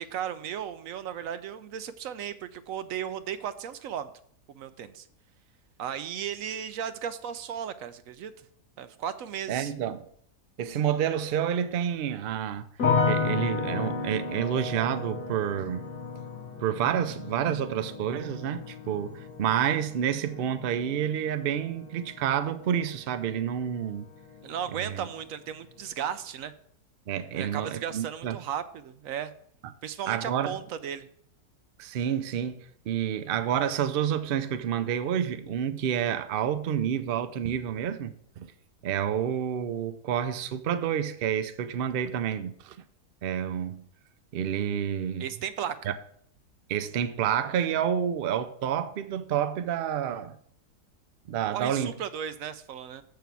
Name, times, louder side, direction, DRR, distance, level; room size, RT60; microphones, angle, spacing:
voice 1, 0.0-4.1 4.5-5.1 5.8-8.3 8.8-9.7 24.4-26.5 27.3-29.3 29.8-31.1 45.2-45.9 51.5-53.0, right 9 dB, 70° right, 0.9 m, -35 dB
voice 2, 9.5-10.0 10.6-12.7 13.1-15.9 16.6-24.1 24.7-25.1 27.1-28.4 30.1-30.6 31.8-38.5 38.8-42.8 43.2-43.8 44.3-45.2 45.9-46.0 46.7-50.4 51.3-51.9, right 9 dB, 85° right, 0.5 m, -29 dB
sound 1, 12.8-23.9 24.1-24.9, left 4 dB, 75° left, 2.0 m, -33 dB
6.9 x 6.6 x 4.6 m
omnidirectional pair, 1.7 m